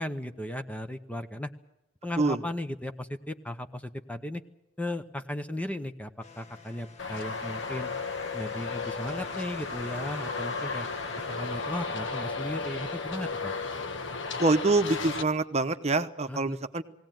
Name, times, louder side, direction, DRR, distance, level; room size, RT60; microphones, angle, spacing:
voice 1, 0.0-1.5 2.0-4.4 4.8-7.9 8.3-10.9 11.3-13.5 16.3-16.6, left 1 dB, 5° left, 7 dB, 0.8 m, -36 dB
sound 1, 6.2-11.9, left 4 dB, 35° left, 1.4 m, -50 dB
Traffic noise roadway noise, 7.0-15.2, left 4 dB, 70° left, 1.4 m, -34 dB
voice 2, 14.4-16.8, right 2 dB, 35° right, 9 dB, 0.9 m, -25 dB
20.5 x 17.5 x 9.1 m, 0.90 s
head